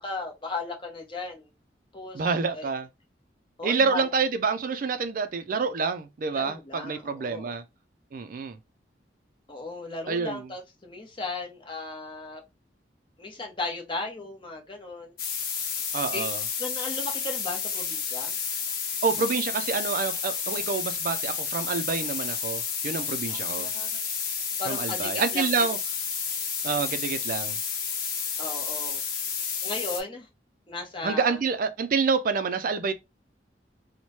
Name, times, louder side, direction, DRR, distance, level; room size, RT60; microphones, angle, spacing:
voice 1, 0.0-1.5 1.9-2.2 2.5-2.7 3.6-4.0 6.3-7.5 9.5-12.4 13.2-15.1 16.1-16.3 16.6-18.4 23.3-23.9 24.6-25.7 28.4-29.0 29.6-30.3 30.7-31.4, left 3 dB, 30° left, 0.9 m, -36 dB
voice 2, 2.1-2.9 3.6-7.6 8.1-8.6 10.1-10.5 15.9-16.4 19.0-23.7 24.7-25.8 26.6-27.6 31.0-32.9, right 5 dB, 50° right, 0.4 m, -27 dB
sound 1, 15.2-30.0, left 6 dB, 55° left, 0.9 m, -31 dB
3.1 x 2.1 x 4.1 m
head